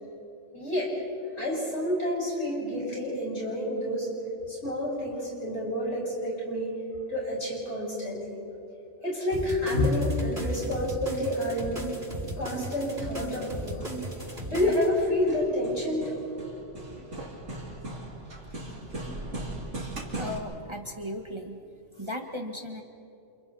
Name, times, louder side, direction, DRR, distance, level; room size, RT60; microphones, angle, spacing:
voice 1, 0.5-0.9 1.4-4.1 4.5-6.8 7.1-8.3 9.0-11.9 12.4-13.8 14.5-16.2 19.5-19.6, left 1 dB, 70° left, -4 dB, 6.6 m, -29 dB
sound 1, 9.3-14.9, right 2 dB, 45° right, 7.2 m, -36 dB
Hammer, 12.8-20.4, right 2 dB, 90° right, 3.1 m, -40 dB
voice 2, 20.2-21.6 22.0-22.8, left 1 dB, 25° right, 3 dB, 1.3 m, -36 dB
30.0 x 28.5 x 4.2 m, 2.9 s
omnidirectional pair, 1.2 m